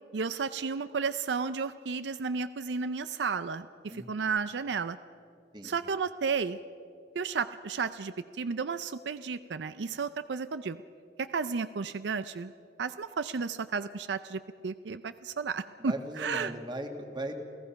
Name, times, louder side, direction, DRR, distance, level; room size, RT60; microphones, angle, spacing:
voice 1, 0.1-5.0 5.6-6.6 7.2-10.8 11.2-12.5 12.8-16.5, right 5 dB, 75° right, 13 dB, 0.5 m, -33 dB
voice 2, 3.9-4.2 5.5-5.7 15.8-17.3, right 1 dB, 25° right, 5 dB, 1.8 m, -38 dB
29.0 x 16.5 x 5.8 m, 2.5 s
head